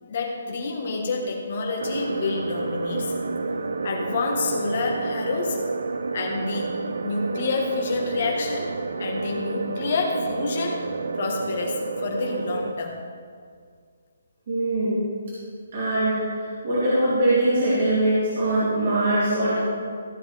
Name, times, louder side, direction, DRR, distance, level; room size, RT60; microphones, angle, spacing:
voice 1, 0.0-3.1 3.8-5.6 6.1-6.7 7.0-8.7 9.0-10.9 11.2-13.0, left 3 dB, 35° left, 1 dB, 1.5 m, -28 dB
sound 1, 1.8-12.7, right 3 dB, 75° right, 0.6 m, -30 dB
voice 2, 14.5-15.0 15.7-19.6, right 1 dB, 35° right, -11 dB, 3.1 m, -22 dB
15.0 x 8.0 x 3.5 m, 2.1 s
hypercardioid pair, 180°, 0 cm